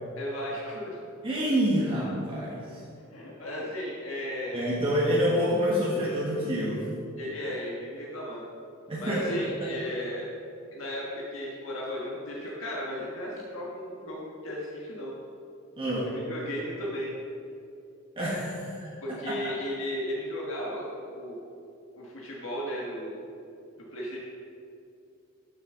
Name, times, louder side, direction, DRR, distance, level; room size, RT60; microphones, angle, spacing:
voice 1, 0.2-1.0 3.1-4.7 7.2-8.4 9.0-10.2 10.7-15.1 16.0-17.1 19.0-21.4 22.0-23.3 23.9-24.2, equal, 70° left, -4 dB, 1.5 m, -35 dB
voice 2, 1.2-2.8 4.5-6.8 8.9-9.4 15.8-16.1 18.2-19.5, equal, 25° right, -6 dB, 1.4 m, -27 dB
12.5 x 7.1 x 3.8 m, 2.6 s
head